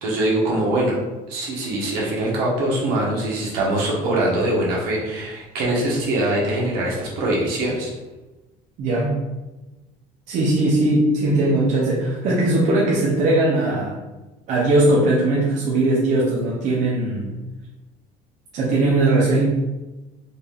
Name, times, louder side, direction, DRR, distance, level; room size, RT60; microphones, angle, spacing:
voice 1, 0.0-0.9 1.3-7.9, right 1 dB, 75° right, -4 dB, 1.4 m, -23 dB
voice 2, 8.8-9.1 10.3-14.0 14.5-17.4 18.5-19.5, right 2 dB, 55° right, -6 dB, 0.9 m, -19 dB
4.1 x 2.7 x 3.5 m, 1.1 s
cardioid pair, 145°, 15 cm